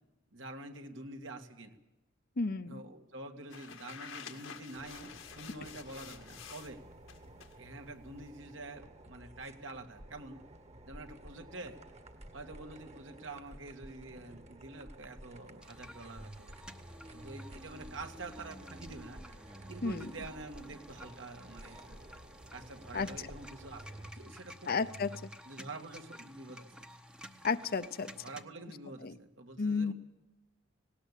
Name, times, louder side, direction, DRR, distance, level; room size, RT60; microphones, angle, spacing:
voice 1, 0.3-1.7 2.7-6.8 7.5-10.4 10.9-11.8 12.3-16.5 17.1-19.2 19.7-22.0 22.5-24.7 25.5-26.7 28.2-29.9, right 2 dB, 70° right, 5 dB, 2.1 m, -47 dB
voice 2, 2.4-2.8 19.8-20.1 22.9-23.1 24.7-25.1 27.4-28.1 29.0-29.1 29.6-29.9, left 4 dB, 50° left, 12 dB, 0.8 m, -32 dB
sound 1, 3.5-6.7 7.1-7.6, left 7 dB, 85° left, 1.9 m, -49 dB
sound 2, 4.7-24.1, right 1 dB, 35° right, 1.7 m, -53 dB
sound 3, 15.6-28.4, equal, 5° right, 0.9 m, -51 dB
18.5 x 18.0 x 8.3 m, 0.99 s
head